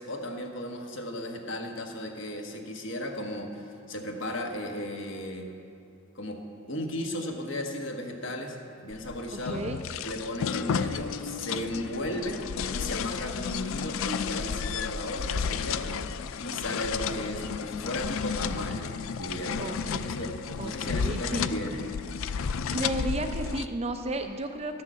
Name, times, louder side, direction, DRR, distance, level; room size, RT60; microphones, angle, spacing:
voice 1, 0.0-5.5 6.1-6.4 6.7-9.6 10.0-12.4 12.7-16.0 16.4-20.3 20.6-21.8, left 1 dB, 65° left, 2 dB, 1.2 m, -35 dB
sound 1, 8.9-23.7, left 6 dB, 80° left, 0.4 m, -32 dB
voice 2, 19.6-20.1 20.6-21.5 22.7-24.8, right 1 dB, 30° right, 6 dB, 0.6 m, -33 dB
11.0 x 6.6 x 7.4 m, 2.5 s
head